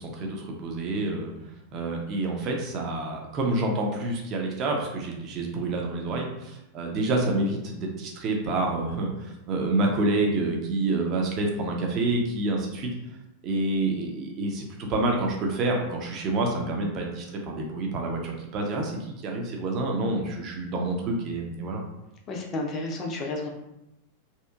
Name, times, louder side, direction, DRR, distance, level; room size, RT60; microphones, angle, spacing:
voice 1, 0.0-1.3 1.7-12.9 13.4-21.8, right 2 dB, 35° right, 1 dB, 0.5 m, -28 dB
voice 2, 22.3-23.5, left 2 dB, 30° left, 1 dB, 0.5 m, -31 dB
2.8 x 2.4 x 2.3 m, 0.89 s
figure-of-eight pair, 90°, 0 cm